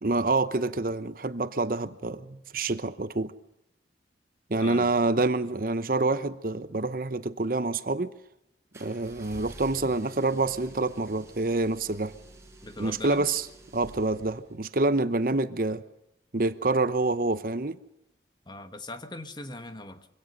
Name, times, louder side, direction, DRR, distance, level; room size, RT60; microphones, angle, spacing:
voice 1, 0.0-3.3 4.5-8.1 8.8-12.1 12.8-13.4 13.7-15.8 16.3-17.8, right 2 dB, 50° right, 1.0 m, -27 dB
voice 2, 4.6-4.9 12.6-13.3 18.5-20.1, left 2 dB, 25° left, 1.5 m, -40 dB
sound 1, 8.7-14.7, right 1 dB, 15° right, 5.7 m, -49 dB
24.5 x 17.5 x 6.8 m
head